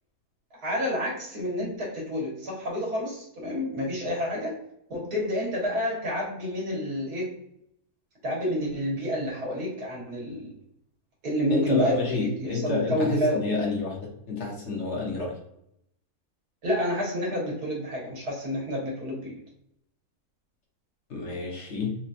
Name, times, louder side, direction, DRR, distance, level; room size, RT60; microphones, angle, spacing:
voice 1, 0.5-4.6 4.9-7.3 8.2-10.5 11.2-13.7 16.6-19.4, equal, 85° right, -4 dB, 2.0 m, -29 dB
voice 2, 11.5-15.4 21.1-22.0, left 3 dB, 50° left, -2 dB, 1.2 m, -29 dB
4.2 x 2.8 x 2.5 m, 0.75 s
omnidirectional pair, 1.6 m